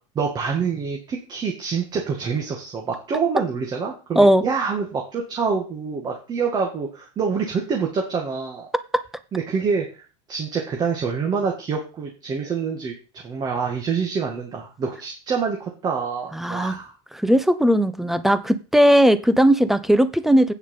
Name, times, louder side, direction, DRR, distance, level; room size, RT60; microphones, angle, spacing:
voice 1, 0.2-8.7 9.3-9.9 10.3-12.9 13.2-16.9, right 5 dB, 30° right, 0 dB, 2.1 m, -26 dB
voice 2, 16.3-16.7 17.2-20.5, equal, ahead, 13 dB, 0.8 m, -17 dB
8.9 x 7.0 x 5.6 m, 0.33 s
supercardioid pair, 140°, 15 cm